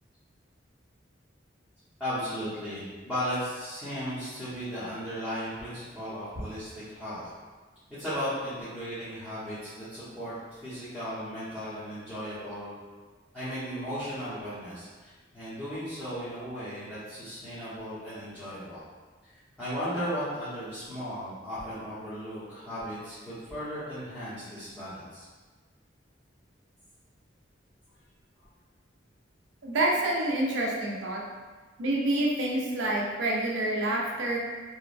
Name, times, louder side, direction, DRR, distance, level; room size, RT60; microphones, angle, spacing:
voice 1, 2.0-7.3 7.9-10.3 10.6-12.7 13.3-18.8 19.6-25.3, equal, 5° left, -16 dB, 0.8 m, -36 dB
voice 2, 29.6-31.2 31.8-34.4, right 1 dB, 85° right, -3 dB, 0.5 m, -27 dB
3.0 x 2.1 x 2.4 m, 1.4 s
head